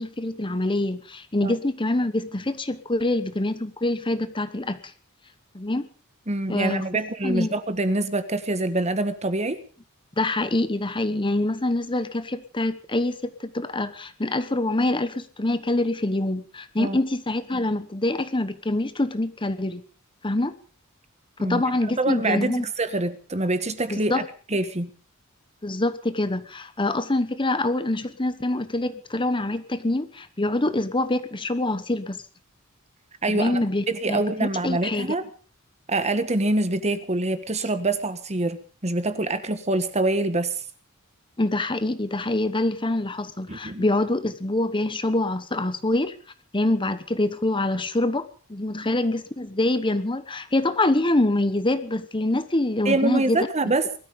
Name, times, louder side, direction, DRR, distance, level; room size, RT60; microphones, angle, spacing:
voice 1, 0.0-4.8 5.5-5.9 6.5-6.8 7.2-7.5 10.2-19.8 20.2-20.6 21.4-22.6 23.9-24.2 25.6-32.2 33.3-35.1 41.4-46.1 46.5-53.5, left 2 dB, 20° left, 12 dB, 1.0 m, -25 dB
voice 2, 6.3-9.6 16.8-17.0 21.4-21.6 21.9-24.9 33.2-33.6 33.9-35.3 35.9-40.6 43.5-43.9 52.8-53.9, right 2 dB, 30° right, 11 dB, 1.5 m, -25 dB
20.5 x 13.5 x 5.2 m, 0.41 s
head